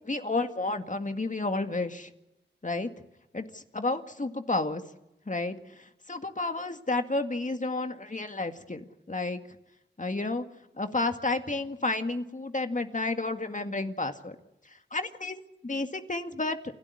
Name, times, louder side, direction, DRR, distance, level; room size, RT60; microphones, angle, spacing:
voice 1, 0.0-2.1 2.6-2.9 3.3-4.8 5.3-9.4 10.0-10.5 10.8-14.4 14.9-16.6, left 2 dB, 40° left, 7 dB, 2.1 m, -31 dB
28.5 x 12.5 x 9.9 m, 0.89 s
cardioid pair, 45°, 20 cm